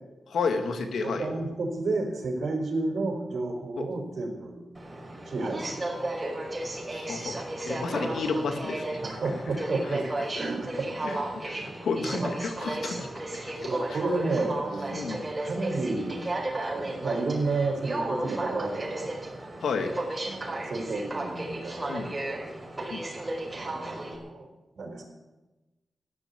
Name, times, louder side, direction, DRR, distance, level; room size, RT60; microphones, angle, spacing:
voice 1, 0.3-1.3 3.8-3.9 6.9-7.4 7.7-9.0 11.0-11.2 11.4-11.5 11.8-13.1 13.9-14.0 14.9-15.2 19.6-19.9 21.9-22.1 22.9-23.0, left 4 dB, 90° left, 6 dB, 2.2 m, -31 dB
voice 2, 1.0-4.6 5.3-6.2 9.0-10.1 10.4-11.8 12.1-12.4 13.6-16.2 16.7-19.1 20.2-22.5 23.6-24.5 24.8-25.1, right 3 dB, 70° right, 3 dB, 4.2 m, -32 dB
Aircraft, 4.7-24.2, right 1 dB, 25° right, 5.3 m, -34 dB
14.5 x 12.0 x 8.4 m, 1.1 s
cardioid pair, 60°, 0 cm